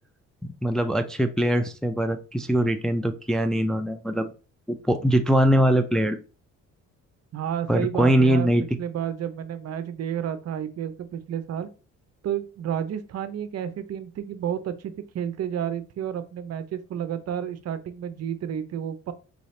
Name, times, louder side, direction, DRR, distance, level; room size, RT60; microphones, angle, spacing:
voice 1, 0.4-4.3 4.8-6.2 7.7-8.6, equal, ahead, 7 dB, 0.4 m, -22 dB
voice 2, 7.3-8.5 8.8-11.7 12.2-19.1, right 9 dB, 55° right, 12 dB, 0.6 m, -31 dB
4.8 x 2.6 x 3.1 m, 0.33 s
cardioid pair, 90°, 30 cm